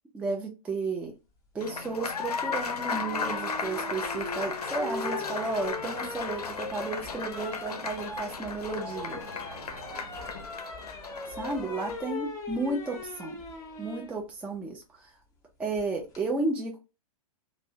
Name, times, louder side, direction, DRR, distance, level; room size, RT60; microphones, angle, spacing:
voice 1, 0.1-1.1 1.5-9.2 11.3-13.4 13.8-15.1 15.6-16.8, right 3 dB, 5° right, 1 dB, 0.3 m, -33 dB
Applause, 1.6-12.0, left 5 dB, 85° left, 0.4 m, -35 dB
sound 1, 2.5-10.3, right 4 dB, 65° right, 0.7 m, -50 dB
sound 2, 2.9-14.1 15.8-16.2, left 2 dB, 20° left, 0.7 m, -40 dB
2.5 x 2.0 x 2.4 m, 0.29 s
figure-of-eight pair, 110°, 19 cm